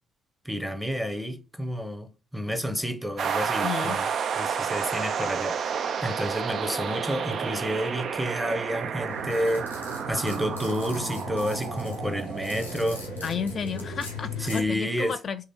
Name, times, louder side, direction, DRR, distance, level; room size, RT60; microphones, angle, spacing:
voice 1, 0.4-4.1 4.4-5.6 6.0-9.7 10.1-13.0 14.4-15.2, equal, 5° right, 0.8 m, -30 dB
sound 1, 3.2-14.8, right 7 dB, 50° right, 0.3 m, -31 dB
voice 2, 3.6-4.0 5.2-5.3 13.2-15.4, left 7 dB, 45° left, 0.3 m, -32 dB
sound 2, 9.1-14.6, left 5 dB, 90° left, 0.9 m, -38 dB
3.1 x 2.8 x 4.1 m
figure-of-eight pair, 45°, 0 cm